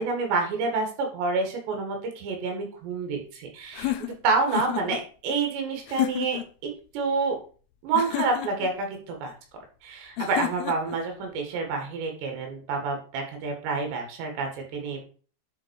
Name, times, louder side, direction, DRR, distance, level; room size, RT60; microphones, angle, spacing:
voice 1, 0.0-3.9 4.2-7.4 7.8-9.3 9.8-15.0, right 4 dB, 80° right, 3 dB, 4.1 m, -28 dB
sound 1, 3.7-5.0 5.9-6.5 7.9-8.7 10.2-11.0, left 14 dB, 80° left, 2.4 m, -30 dB
9.9 x 4.5 x 4.7 m, 0.40 s
omnidirectional pair, 5.0 m